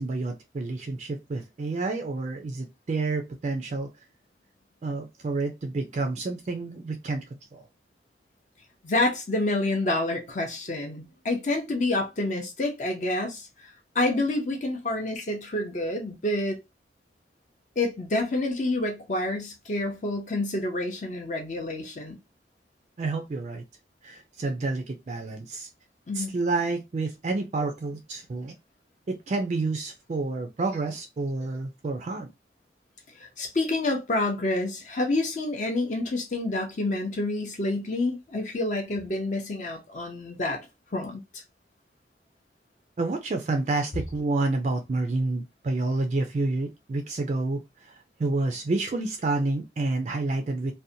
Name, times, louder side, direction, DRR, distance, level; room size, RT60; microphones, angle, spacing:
voice 1, 0.0-3.9 4.8-7.2 7.5-7.6 23.0-23.6 24.0-25.7 26.1-28.5 29.1-32.3 43.0-50.7, right 3 dB, 35° right, 0.3 m, -29 dB
voice 2, 8.8-16.6 17.8-22.2 26.1-26.4 33.2-40.6 40.9-41.4, left 2 dB, 40° left, 0.5 m, -28 dB
2.6 x 2.1 x 2.6 m
head